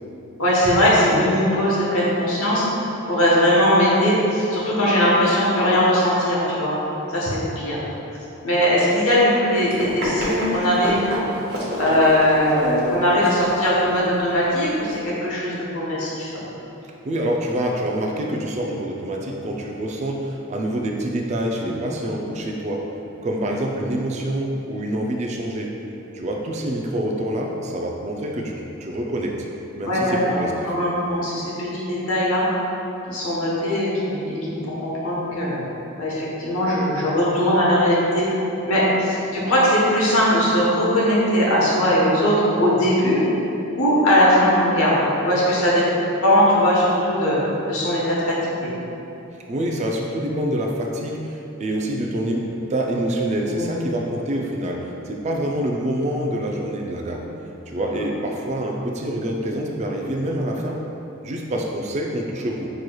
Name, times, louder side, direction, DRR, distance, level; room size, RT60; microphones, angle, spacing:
voice 1, 0.4-2.7 3.1-6.8 7.1-7.8 8.4-11.0 11.8-16.4 21.6-21.8 29.8-32.5 33.1-35.6 36.0-38.4 38.7-43.2 43.8-45.8 46.2-47.4 47.7-48.7 53.5-53.7 57.7-57.8, equal, 80° left, -6 dB, 1.1 m, -20 dB
Run, 9.5-15.0, equal, 45° right, 0.9 m, -31 dB
voice 2, 17.0-22.8 23.2-25.7 26.1-29.4 29.7-30.8 49.5-57.3 57.7-60.8 61.2-62.7, right 1 dB, 30° right, 0 dB, 0.3 m, -26 dB
6.3 x 3.0 x 2.2 m, 2.9 s
head